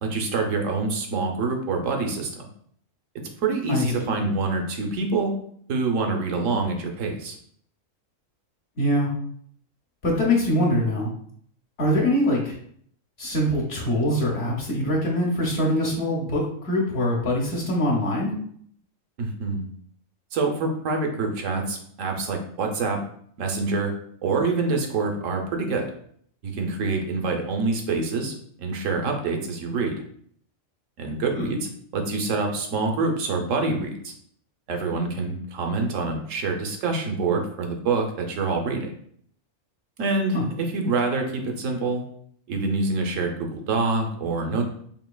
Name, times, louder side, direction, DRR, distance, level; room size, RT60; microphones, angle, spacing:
voice 1, 0.0-2.5 3.4-5.3 5.7-7.4 19.2-19.6 20.3-23.0 23.4-23.9 24.2-25.9 26.4-29.9 31.0-34.1 34.7-38.9 40.0-42.0 42.5-44.6, right 3 dB, 75° right, 3 dB, 1.1 m, -26 dB
voice 2, 3.7-4.2 8.8-9.1 10.0-11.1 11.8-12.6 13.2-18.3 31.3-31.5 40.3-40.4, left 1 dB, 55° left, -2 dB, 1.1 m, -23 dB
5.2 x 2.8 x 2.3 m, 0.63 s
omnidirectional pair, 1.4 m